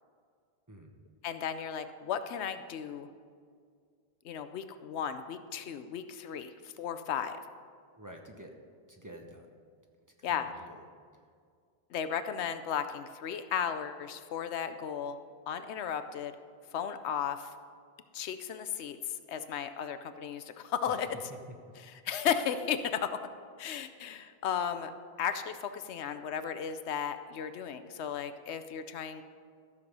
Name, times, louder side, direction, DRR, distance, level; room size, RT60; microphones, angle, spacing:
voice 1, 1.2-3.1 4.2-7.4 10.2-10.5 11.9-15.2 15.5-16.4 16.7-17.5 18.1-21.3 21.8-23.1 23.6-24.9 25.2-29.2, left 8 dB, 90° left, 10 dB, 0.9 m, -35 dB
voice 2, 8.0-8.5 8.9-9.5 10.2-10.9 21.3-21.4 21.7-21.8, right 1 dB, 20° right, 2 dB, 0.9 m, -49 dB
13.5 x 6.6 x 5.4 m, 2.1 s
omnidirectional pair, 1.1 m